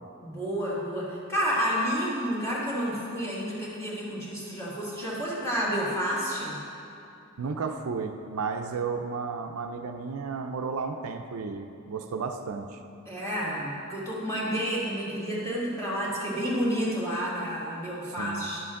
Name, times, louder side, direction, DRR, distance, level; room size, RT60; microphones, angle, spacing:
voice 1, 0.2-6.6 13.1-18.6, equal, 15° left, -7 dB, 1.9 m, -30 dB
voice 2, 7.4-12.8 18.2-18.4, right 5 dB, 70° right, 5 dB, 0.5 m, -33 dB
11.0 x 6.9 x 3.7 m, 2.8 s
head